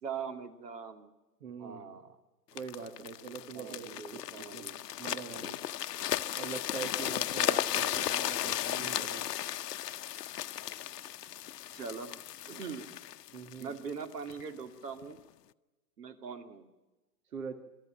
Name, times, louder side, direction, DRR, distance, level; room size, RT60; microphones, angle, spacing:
voice 1, 0.0-1.1 1.6-2.2 3.5-4.8 7.1-7.7 11.7-12.2 12.5-12.9 13.6-15.2 16.0-16.7, right 6 dB, 85° right, 8 dB, 2.6 m, -42 dB
voice 2, 1.4-2.0 2.5-4.7 5.0-5.6 6.4-9.3 13.3-13.7 17.3-17.5, right 6 dB, 60° right, 7 dB, 1.8 m, -43 dB
sound 1, 2.6-14.4 15.0-15.2, left 12 dB, 90° left, 0.8 m, -35 dB
24.0 x 13.5 x 8.9 m, 1.1 s
hypercardioid pair, 175°, 47 cm